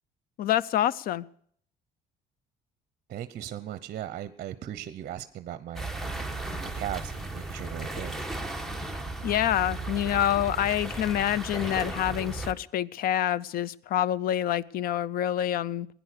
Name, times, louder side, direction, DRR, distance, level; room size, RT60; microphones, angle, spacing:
voice 1, 0.4-1.3 9.2-15.9, left 11 dB, 60° left, 0.5 m, -27 dB
voice 2, 3.1-5.9 6.6-8.2, right 11 dB, 55° right, 0.7 m, -37 dB
sound 1, 5.8-12.5, right 2 dB, ahead, 1.2 m, -35 dB
16.5 x 10.0 x 6.6 m
cardioid pair, 110°, 17 cm